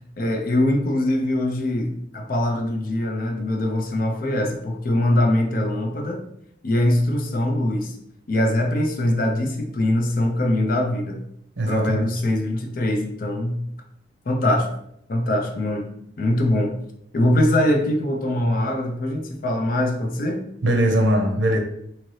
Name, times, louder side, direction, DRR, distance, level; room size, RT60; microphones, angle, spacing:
voice 1, 0.2-6.3 6.6-8.0 8.3-11.2 11.7-13.6 14.3-14.7 15.1-15.9 16.2-16.8 17.1-20.4, left 1 dB, 50° left, 0.5 m, -22 dB
voice 2, 11.6-12.1 20.6-21.6, right 1 dB, 80° right, 0.7 m, -20 dB
2.8 x 2.7 x 3.1 m
head